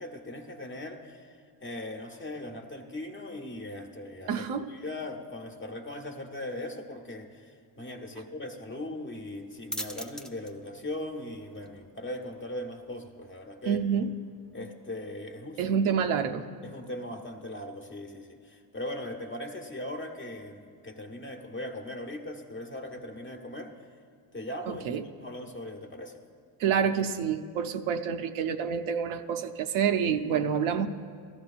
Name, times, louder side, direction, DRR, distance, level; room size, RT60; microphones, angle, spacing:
voice 1, 0.0-13.8 14.5-15.7 16.6-23.7 24.3-26.2, left 1 dB, 25° left, 3 dB, 1.0 m, -39 dB
voice 2, 4.3-4.7 13.6-14.2 15.6-16.4 24.7-25.0 26.6-30.9, right 7 dB, 75° right, 7 dB, 0.7 m, -28 dB
sound 1, 9.1-16.4, equal, ahead, 0.4 m, -47 dB
16.5 x 13.5 x 2.4 m, 2.1 s
cardioid pair, 90°, 49 cm